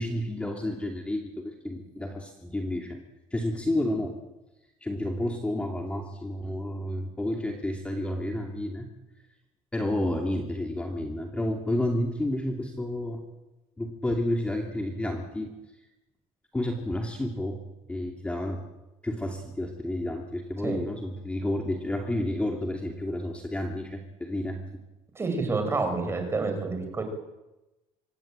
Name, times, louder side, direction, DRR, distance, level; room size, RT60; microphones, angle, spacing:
voice 1, 0.0-3.0 3.3-4.2 4.8-8.9 9.7-13.2 13.8-15.5 16.5-17.6 17.9-18.6 19.0-24.6, left 1 dB, 10° left, 2 dB, 2.6 m, -30 dB
voice 2, 25.2-27.0, right 3 dB, 20° right, 6 dB, 5.6 m, -28 dB
25.5 x 18.5 x 8.9 m, 1.0 s
cardioid pair, 145°, 13 cm